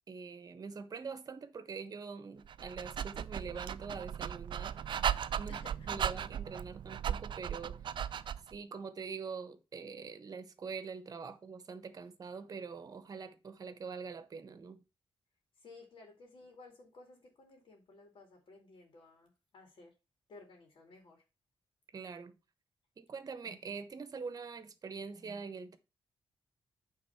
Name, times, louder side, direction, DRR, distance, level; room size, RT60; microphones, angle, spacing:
voice 1, 0.1-4.8 5.4-5.6 5.9-7.9 8.5-14.8 21.9-22.4 23.0-25.8, right 5 dB, 40° right, 1.1 m, -44 dB
Dog, 2.5-8.6, right 9 dB, 55° right, 0.5 m, -37 dB
voice 2, 5.5-6.0 15.6-19.9 20.3-21.2, left 3 dB, 60° left, 2.5 m, -56 dB
9.1 x 3.8 x 5.8 m
wide cardioid pair, 135°, 10 cm